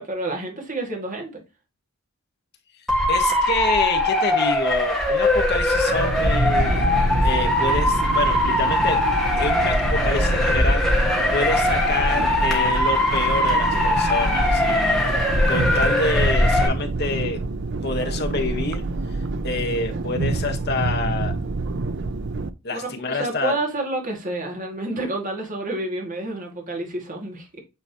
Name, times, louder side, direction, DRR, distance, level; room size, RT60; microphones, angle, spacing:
voice 1, 0.0-1.4 22.7-22.8 23.1-27.6, right 2 dB, 40° right, 2.2 m, -29 dB
Motor vehicle (road) / Siren, 2.9-16.7, left 1 dB, 5° left, 1.7 m, -21 dB
voice 2, 3.1-6.9 7.2-9.0 9.4-10.9 11.3-17.4 17.8-18.8 19.4-21.3 22.6-23.6, left 3 dB, 50° left, 1.3 m, -27 dB
sound 1, 5.9-22.5, right 3 dB, 55° right, 0.5 m, -27 dB
8.9 x 4.1 x 3.0 m
head